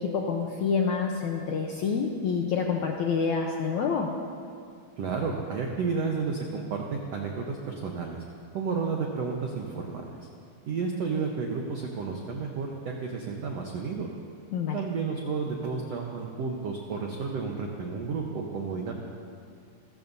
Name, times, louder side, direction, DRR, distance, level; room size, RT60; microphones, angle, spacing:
voice 1, 0.0-4.1 14.5-14.8, left 5 dB, 75° left, 1 dB, 1.7 m, -27 dB
voice 2, 5.0-8.2 8.5-10.3 10.7-14.1 14.7-18.9, right 5 dB, 85° right, 0 dB, 1.4 m, -31 dB
28.5 x 14.5 x 2.7 m, 2.3 s
omnidirectional pair, 4.5 m